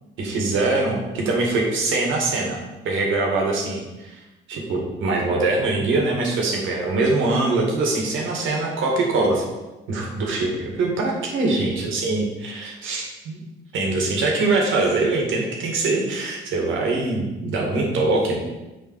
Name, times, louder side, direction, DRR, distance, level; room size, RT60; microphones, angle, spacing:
voice 1, 0.2-2.6 2.8-4.2 4.5-9.4 9.9-13.4 13.7-18.4, right 3 dB, 85° right, -1 dB, 2.0 m, -23 dB
6.7 x 4.9 x 4.8 m, 1.1 s
cardioid pair, 90°, 20 cm